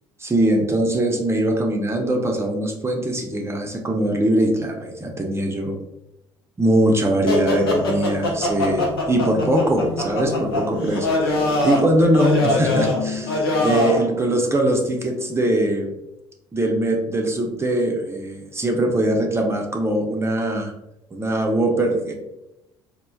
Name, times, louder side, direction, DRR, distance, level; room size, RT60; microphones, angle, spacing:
voice 1, 0.2-5.8 6.6-15.9 16.5-20.7 21.1-22.1, right 1 dB, 20° right, 1 dB, 0.6 m, -21 dB
sound 1, 7.3-14.1, left 2 dB, 90° left, 0.5 m, -23 dB
3.2 x 2.1 x 2.2 m, 0.87 s
hypercardioid pair, 60°, 12 cm